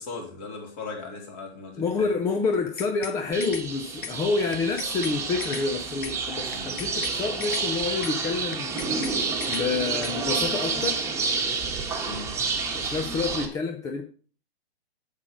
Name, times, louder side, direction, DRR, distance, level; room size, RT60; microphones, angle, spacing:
voice 1, 0.0-2.2 6.5-6.8 12.1-12.4, left 3 dB, 35° left, 3.7 m, -38 dB
voice 2, 1.8-9.2 9.5-11.0 12.7-14.0, left 4 dB, 10° left, 0.5 m, -28 dB
sound 1, 2.5-3.2 3.4-3.7 4.0-4.2 4.5-5.2 5.4-5.7 6.0-6.2 6.5-7.2 7.4-7.7 8.0-8.2 8.5-9.2 9.4-9.7 10.0-10.2, left 7 dB, 50° left, 1.5 m, -37 dB
sound 2, 3.3-13.5, right 4 dB, 10° right, 1.5 m, -29 dB
8.1 x 8.0 x 5.0 m
hypercardioid pair, 135°, 32 cm